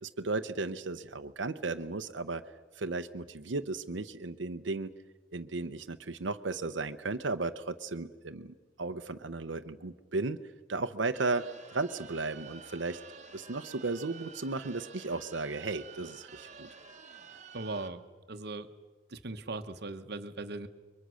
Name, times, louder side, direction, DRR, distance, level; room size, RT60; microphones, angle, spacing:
voice 1, 0.0-2.4 2.7-4.9 5.3-10.4 10.7-13.0 13.3-16.7, right 3 dB, 80° right, 8 dB, 0.8 m, -35 dB
sound 1, 11.1-17.9, right 5 dB, 40° right, 1.4 m, -51 dB
voice 2, 17.5-18.0 18.3-18.7 19.1-20.7, right 2 dB, 60° right, 9 dB, 1.2 m, -39 dB
30.0 x 23.5 x 6.3 m, 1.4 s
head